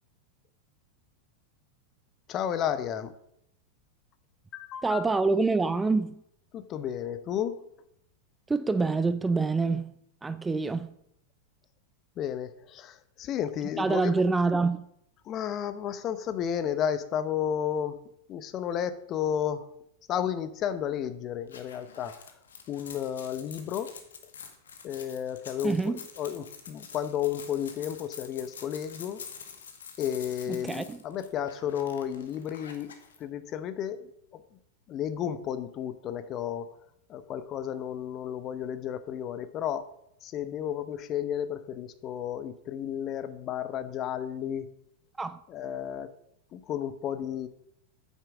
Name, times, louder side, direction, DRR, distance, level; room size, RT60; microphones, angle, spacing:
voice 1, 2.3-3.1 4.5-5.0 6.5-7.6 12.2-14.1 15.2-18.0 18.3-19.7 20.1-22.1 22.7-24.0 24.8-29.2 30.0-32.9 33.2-34.4 34.9-36.7 37.1-39.9 40.2-44.7 45.5-46.1 46.5-47.5, left 9 dB, 35° left, 0.9 m, -32 dB
voice 2, 4.8-6.2 8.5-10.0 10.2-11.0 13.8-14.8 25.6-26.0 30.5-31.0 45.2-45.4, right 3 dB, 10° right, 0.5 m, -26 dB
sound 1, 21.5-33.2, left 6 dB, 65° left, 1.6 m, -47 dB
9.2 x 8.3 x 6.2 m
figure-of-eight pair, 90°, 0 cm